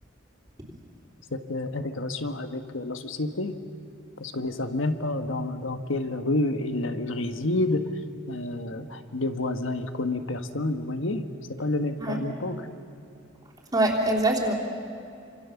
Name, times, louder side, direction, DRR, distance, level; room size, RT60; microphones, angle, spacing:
voice 1, 1.3-3.6 4.2-7.8 8.3-11.3 11.6-12.7, left 2 dB, 80° left, 8 dB, 1.5 m, -29 dB
voice 2, 13.7-14.5, right 1 dB, 20° right, -3 dB, 3.3 m, -23 dB
28.0 x 26.5 x 7.2 m, 2.6 s
head